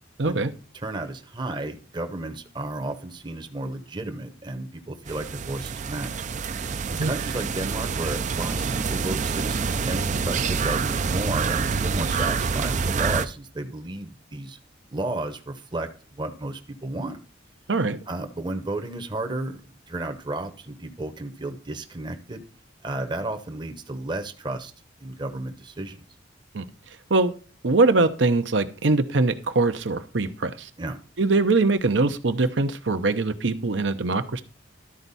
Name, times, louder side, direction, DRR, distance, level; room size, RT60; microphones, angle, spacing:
voice 1, 0.2-0.5 7.0-7.1 17.7-18.0 26.5-26.6 27.1-27.3 27.6-30.7 31.2-34.4, right 3 dB, 75° right, 10 dB, 0.8 m, -22 dB
voice 2, 0.7-6.2 6.9-14.6 14.9-17.2 18.1-19.6 19.9-22.4 22.8-24.7 25.0-26.0 30.8-31.0, right 2 dB, 25° right, 6 dB, 0.8 m, -33 dB
sound 1, 5.1-13.3, right 5 dB, 40° right, 0.4 m, -27 dB
12.5 x 4.5 x 4.1 m, 0.39 s
head